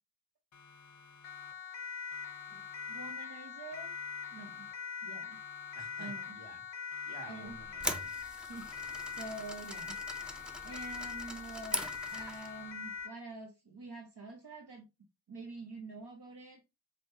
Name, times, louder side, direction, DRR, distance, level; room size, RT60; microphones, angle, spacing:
Siren, 0.5-1.8 2.1-3.4 3.7-5.0 5.3-6.6 6.9-8.2 8.5-9.8 10.1-11.4 11.7-13.0, left 5 dB, 45° left, 0.5 m, -58 dB
Siren 2, 1.2-13.2, left 6 dB, 90° left, 0.6 m, -43 dB
voice 1, 2.5-3.9 4.3-4.7 5.0-5.4 6.0-6.4 7.3-7.6 8.4-10.0 10.6-14.9 15.3-16.6, right 3 dB, 70° right, 0.9 m, -47 dB
voice 2, 5.7-8.1, right 2 dB, 40° right, 1.8 m, -53 dB
sound 1, 7.5-12.6, equal, ahead, 0.5 m, -41 dB
5.0 x 2.2 x 2.7 m
wide cardioid pair, 40°, 42 cm